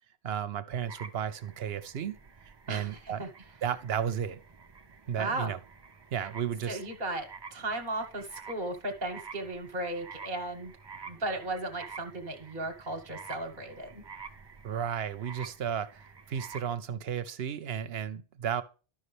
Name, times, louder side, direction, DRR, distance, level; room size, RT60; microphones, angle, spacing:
voice 1, 0.2-2.1 2.7-3.2 3.6-4.4 5.1-5.6 6.1-6.8 14.6-18.6, right 8 dB, 80° right, 0.9 m, -33 dB
sound 1, 0.9-16.8, right 5 dB, 30° right, 0.6 m, -49 dB
voice 2, 2.7-3.3 5.2-5.5 6.7-10.7 11.0-14.0, right 2 dB, 50° right, 1.3 m, -36 dB
12.0 x 5.6 x 3.2 m
omnidirectional pair, 1.0 m